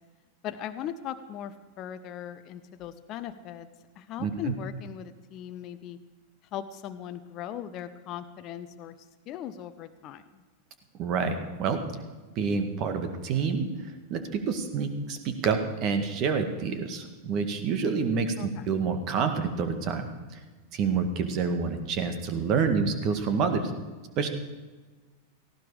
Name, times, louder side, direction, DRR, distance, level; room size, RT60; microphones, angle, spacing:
voice 1, 0.4-3.7 4.0-6.0 6.5-8.9 9.3-10.4 18.4-18.7, left 10 dB, 35° left, 9 dB, 0.9 m, -39 dB
voice 2, 4.2-4.5 11.0-11.8 12.4-13.7 14.1-20.1 20.7-23.7 24.2-24.3, right 5 dB, 40° right, 7 dB, 2.0 m, -28 dB
18.0 x 15.5 x 5.0 m, 1.3 s
figure-of-eight pair, 90°, 0 cm